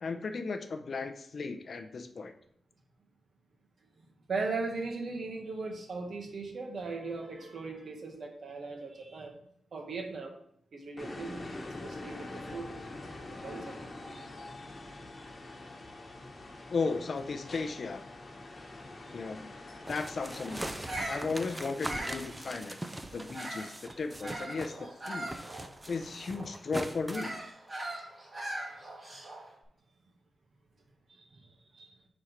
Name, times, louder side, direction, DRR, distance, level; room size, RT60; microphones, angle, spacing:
voice 1, 0.0-2.3 16.7-18.0 19.1-19.5 19.9-20.7 21.1-22.8 23.1-25.3 25.9-27.3, left 4 dB, 50° left, 8 dB, 0.6 m, -35 dB
voice 2, 4.3-9.4 9.7-10.3 10.7-12.7 13.3-13.8 23.7-23.8 31.1-31.5 31.7-31.9, right 3 dB, 60° right, 2 dB, 1.4 m, -38 dB
sound 1, 11.0-20.7, left 2 dB, 35° left, 1.2 m, -44 dB
sound 2, 19.9-24.8 25.1-27.3, right 1 dB, 10° right, 0.5 m, -41 dB
Bird vocalization bird call bird song, 20.7-23.8 24.2-29.5, right 1 dB, 35° right, 2.3 m, -41 dB
6.2 x 4.3 x 5.2 m, 0.67 s
wide cardioid pair, 135°, 0 cm